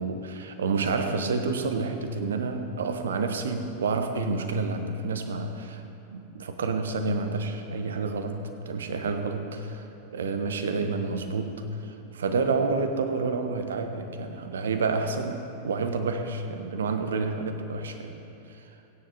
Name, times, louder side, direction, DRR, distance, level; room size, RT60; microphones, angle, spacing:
voice 1, 0.0-5.8 6.1-18.7, right 4 dB, 65° right, 7 dB, 1.0 m, -29 dB
21.0 x 9.9 x 3.0 m, 2.9 s
figure-of-eight pair, 90°, 0 cm